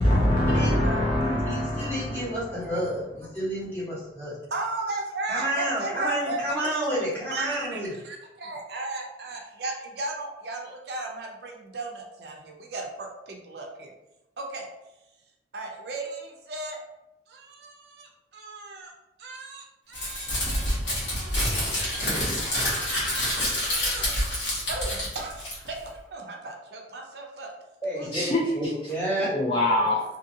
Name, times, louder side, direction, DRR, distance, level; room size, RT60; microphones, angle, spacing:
voice 1, 0.0-2.4 28.1-28.5 29.3-30.0, left 1 dB, 25° left, -3 dB, 0.3 m, -24 dB
voice 2, 0.6-1.6 2.6-2.8 4.5-6.4 7.3-7.8 8.0-13.9 14.4-14.7 15.5-16.8 17.3-18.9 19.2-21.4 21.7-22.2 22.4-23.5 23.7-24.2 24.7-27.5 28.0-28.1, right 2 dB, 60° right, 1 dB, 0.5 m, -36 dB
voice 3, 1.2-4.4 5.3-8.0 27.8-28.2 28.5-29.3, right 1 dB, 10° left, -10 dB, 1.2 m, -30 dB
Crumpling crinkling, 19.9-25.9, left 1 dB, 80° left, 1.3 m, -27 dB
2.7 x 2.6 x 2.7 m, 0.95 s
head